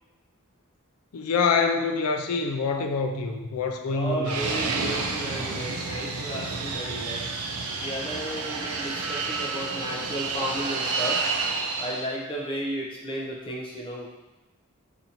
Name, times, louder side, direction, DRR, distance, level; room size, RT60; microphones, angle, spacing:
voice 1, 1.1-4.5, left 4 dB, 85° left, 5 dB, 0.4 m, -26 dB
voice 2, 3.9-7.2 7.8-11.2 11.8-14.1, right 1 dB, 25° left, -2 dB, 0.4 m, -33 dB
Fixed-wing aircraft airplane, 4.2-12.1, right 4 dB, 75° right, 0.4 m, -30 dB
2.6 x 2.5 x 4.2 m, 1.1 s
head